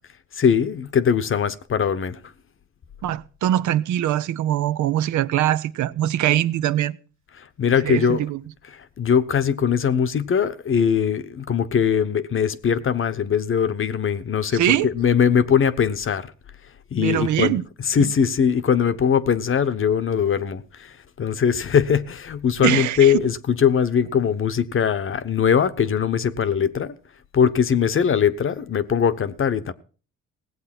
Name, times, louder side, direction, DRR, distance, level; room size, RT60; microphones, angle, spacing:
voice 1, 0.3-2.2 7.4-8.2 8.7-16.3 16.9-17.6 17.8-27.0 27.3-29.7, left 7 dB, 45° left, 1.0 m, -21 dB
voice 2, 3.0-7.0 7.8-8.4 14.5-14.9 17.0-17.6 18.0-18.1 22.6-23.1, right 12 dB, 75° right, 0.7 m, -22 dB
17.5 x 8.0 x 6.0 m
cardioid pair, 90°, 30 cm